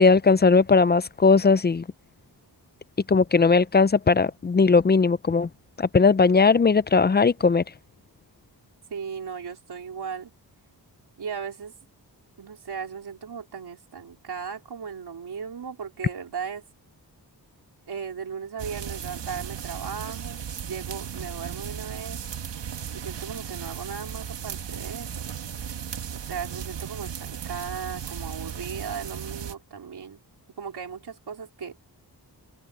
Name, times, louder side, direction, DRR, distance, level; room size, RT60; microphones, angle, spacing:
voice 1, 0.0-1.8 3.1-5.5 5.8-7.6, left 4 dB, 25° left, 0.4 m, -18 dB
voice 2, 8.9-10.3 11.2-11.7 12.4-16.6 17.9-22.2 22.9-25.3 26.1-30.2 30.6-31.8, right 6 dB, 65° right, 4.0 m, -37 dB
sound 1, 18.6-29.5, right 8 dB, 85° right, 1.7 m, -36 dB
open air
wide cardioid pair, 145°, 42 cm